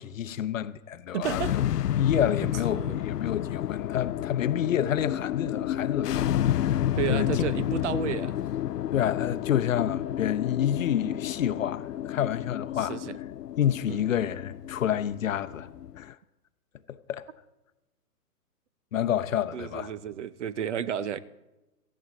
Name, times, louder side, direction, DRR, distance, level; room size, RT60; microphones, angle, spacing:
voice 1, 0.0-1.6 2.0-7.4 8.9-13.0 13.6-15.7 16.0-16.2 16.9-17.3 18.9-19.9, left 10 dB, 55° left, 0.8 m, -29 dB
sound 1, 1.1-16.1, left 11 dB, 80° left, 0.5 m, -30 dB
voice 2, 1.1-1.5 2.6-3.0 7.0-8.3 12.9-13.2 13.9-14.0 19.5-21.2, right 9 dB, 50° right, 0.7 m, -32 dB
17.5 x 14.5 x 4.0 m
hypercardioid pair, 130°, 47 cm